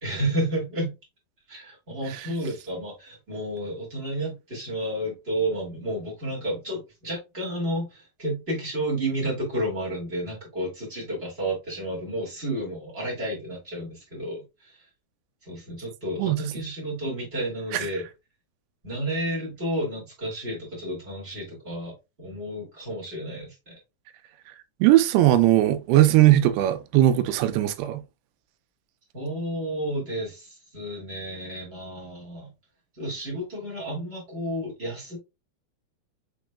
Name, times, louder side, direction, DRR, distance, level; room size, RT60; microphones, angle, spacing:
voice 1, 0.0-0.9 1.5-14.8 15.4-18.0 18.8-21.9 22.2-23.8 29.1-32.5 32.9-35.2, right 1 dB, 25° right, 1.5 m, -31 dB
voice 2, 24.8-28.0, right 14 dB, 85° right, 2.6 m, -19 dB
6.2 x 3.8 x 2.2 m
omnidirectional pair, 4.4 m